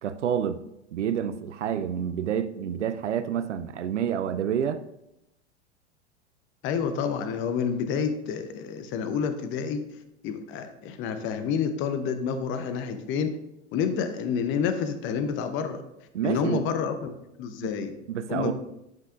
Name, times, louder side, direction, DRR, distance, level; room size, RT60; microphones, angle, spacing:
voice 1, 0.0-0.6 0.9-4.8 16.1-16.6 17.6-17.7 18.1-18.5, right 9 dB, 80° right, 11 dB, 0.5 m, -28 dB
voice 2, 6.6-9.8 10.2-13.4 13.7-15.8 16.2-17.9 18.3-18.5, left 6 dB, 35° left, 9 dB, 0.7 m, -29 dB
10.5 x 5.5 x 2.4 m, 0.86 s
figure-of-eight pair, 90°, 35 cm